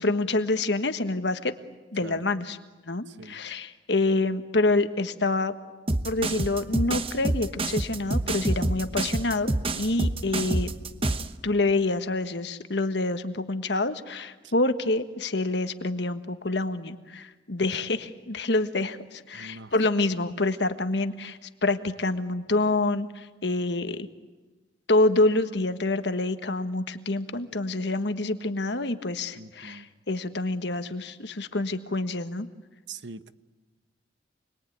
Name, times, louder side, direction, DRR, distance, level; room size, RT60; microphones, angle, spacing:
voice 1, 0.0-1.5 1.9-2.6 2.9-5.5 6.0-10.7 11.4-24.1 24.9-32.5, left 2 dB, 65° left, 9 dB, 1.4 m, -27 dB
voice 2, 3.1-3.4 10.2-10.6 14.4-14.5 17.6-17.7 19.3-19.7 29.3-29.9 32.9-33.3, right 4 dB, 70° right, 12 dB, 1.1 m, -44 dB
sound 1, 5.9-11.3, right 2 dB, 30° right, 1.0 m, -27 dB
29.0 x 21.5 x 9.4 m, 1.3 s
head